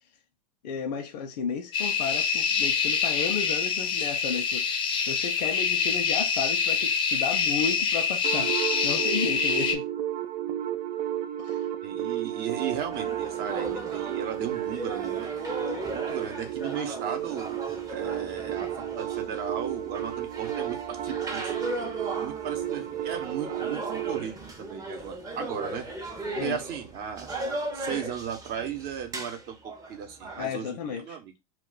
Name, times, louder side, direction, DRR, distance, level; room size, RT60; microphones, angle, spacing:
voice 1, 0.6-9.9 11.4-11.7 26.3-26.6 30.4-31.2, left 6 dB, 85° left, 0.5 m, -33 dB
sound 1, 1.7-9.8, left 6 dB, 25° left, 0.4 m, -26 dB
sound 2, 8.2-24.2, right 11 dB, 80° right, 0.4 m, -33 dB
voice 2, 11.8-15.3 15.9-17.6 17.9-18.7 19.0-21.7 22.2-25.9 26.4-27.3 27.7-31.3, right 8 dB, 50° right, 0.8 m, -36 dB
sound 3, 12.7-30.4, right 2 dB, 15° right, 0.6 m, -37 dB
2.3 x 2.2 x 3.8 m
supercardioid pair, 125°, 21 cm